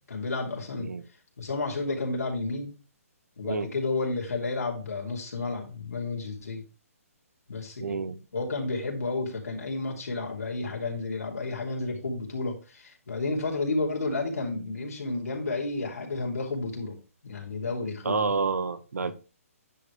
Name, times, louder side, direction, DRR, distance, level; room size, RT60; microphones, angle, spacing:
voice 1, 0.1-0.9 1.4-2.7 3.4-6.6 7.5-8.0 8.3-16.9 17.2-18.3 19.0-19.1, left 3 dB, 85° left, 3.2 m, -31 dB
voice 2, 7.8-8.2 18.0-19.1, right 5 dB, 85° right, 1.0 m, -29 dB
9.9 x 5.1 x 3.4 m
hypercardioid pair, 175°, 8 cm